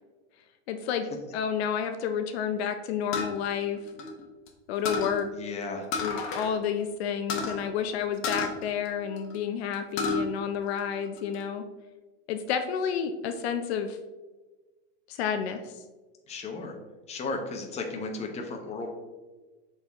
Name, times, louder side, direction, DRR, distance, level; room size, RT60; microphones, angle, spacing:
voice 1, 0.7-1.1 1.3-3.8 4.7-5.3 6.0-11.6 12.3-14.0 15.1-15.7, left 7 dB, 70° left, 8 dB, 0.6 m, -30 dB
sound 1, 3.1-4.5 4.9-5.2 5.9-6.5 6.8-6.9 7.3-7.6 8.2-9.4 9.7-10.2 10.7-11.4, left 3 dB, 40° left, 1.2 m, -32 dB
voice 2, 5.3-5.9 16.3-16.8 17.1-18.9, left 3 dB, 20° left, 2 dB, 0.9 m, -35 dB
6.7 x 4.1 x 3.5 m, 1.2 s
supercardioid pair, 135°, 33 cm